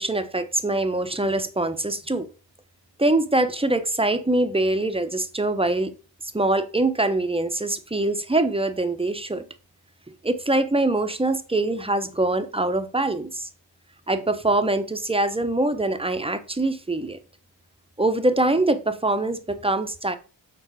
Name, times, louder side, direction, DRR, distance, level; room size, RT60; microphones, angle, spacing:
voice 1, 0.0-2.3 3.0-5.9 6.3-9.5 10.2-13.5 14.1-17.2 18.0-20.1, right 2 dB, 10° right, 1.2 m, -23 dB
6.5 x 4.6 x 5.0 m
supercardioid pair, 45°, 46 cm